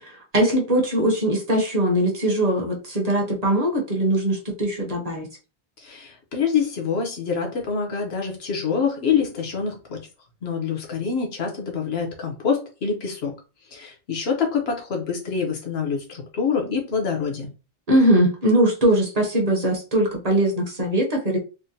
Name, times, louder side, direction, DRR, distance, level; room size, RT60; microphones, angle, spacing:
voice 1, 0.0-5.3 17.9-21.4, right 1 dB, 40° right, 0 dB, 0.8 m, -21 dB
voice 2, 5.8-10.0 10.4-13.3 13.7-17.5, left 6 dB, 70° left, 1 dB, 1.1 m, -26 dB
3.7 x 2.1 x 2.6 m, 0.32 s
omnidirectional pair, 1.1 m